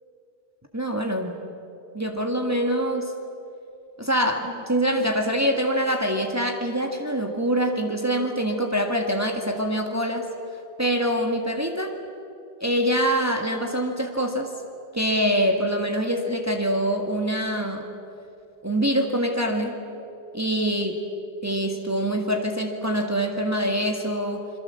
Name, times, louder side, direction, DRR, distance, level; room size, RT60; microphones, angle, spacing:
voice 1, 0.7-1.3 1.9-3.1 4.0-10.3 10.8-11.9 12.6-14.5 14.9-17.9 18.6-19.8 20.3-21.0 21.4-24.5, equal, 15° right, 2 dB, 1.8 m, -24 dB
27.0 x 23.0 x 7.6 m, 2.7 s
omnidirectional pair, 1.0 m